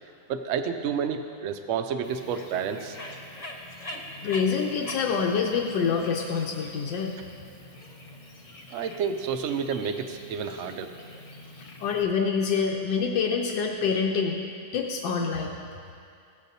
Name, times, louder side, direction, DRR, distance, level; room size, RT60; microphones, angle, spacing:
voice 1, 0.3-3.0 3.9-4.0 8.7-10.9, right 7 dB, 80° right, 5 dB, 0.6 m, -30 dB
Bird, 2.0-12.0, left 1 dB, 35° left, 0.5 m, -44 dB
voice 2, 4.2-7.1 11.6-14.4 14.7-15.5, left 6 dB, 80° left, 1 dB, 1.4 m, -26 dB
16.5 x 7.5 x 2.7 m, 2.4 s
omnidirectional pair, 1.9 m